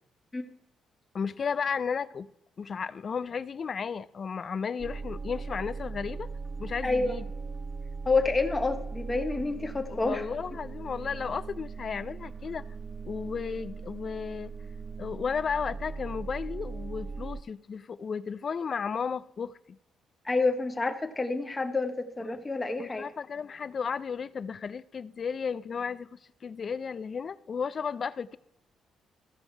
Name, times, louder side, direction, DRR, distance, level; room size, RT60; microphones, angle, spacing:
voice 1, 1.1-2.3 2.6-6.3 6.6-7.3 9.9-12.6 13.0-14.5 15.0-19.8 22.3-22.4 22.8-28.4, left 6 dB, 45° left, 17 dB, 0.4 m, -34 dB
Horror Ambience, 4.8-17.4, right 4 dB, 30° right, 0.4 m, -39 dB
voice 2, 6.8-7.2 8.0-10.3 20.2-23.0, left 3 dB, 20° left, 6 dB, 1.3 m, -28 dB
15.0 x 5.3 x 4.5 m, 0.84 s
cardioid pair, 90°, 0 cm